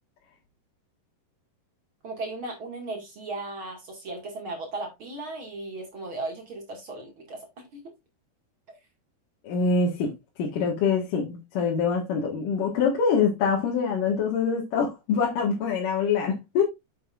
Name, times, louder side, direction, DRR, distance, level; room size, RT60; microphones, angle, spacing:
voice 1, 2.0-7.9, right 2 dB, 40° right, 2.0 m, -36 dB
voice 2, 9.4-10.1 10.4-16.6, left 5 dB, 60° left, 2.8 m, -25 dB
8.8 x 7.8 x 2.5 m
omnidirectional pair, 4.8 m